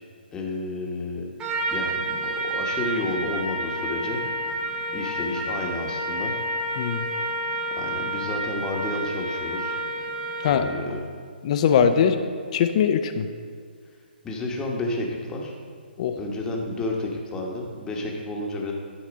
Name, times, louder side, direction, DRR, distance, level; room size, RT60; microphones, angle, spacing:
voice 1, 0.3-1.2 1.7-4.2 4.9-6.3 7.8-9.8 10.5-11.0 11.9-12.0 14.2-15.5 16.2-18.7, left 2 dB, 10° left, -1 dB, 1.0 m, -31 dB
Trumpet, 1.4-10.7, right 1 dB, 15° right, 0.7 m, -29 dB
voice 2, 11.4-12.2 12.5-13.3 16.0-16.2, left 7 dB, 40° left, 9 dB, 0.5 m, -21 dB
11.5 x 4.2 x 5.1 m, 2.1 s
hypercardioid pair, 150°, 6 cm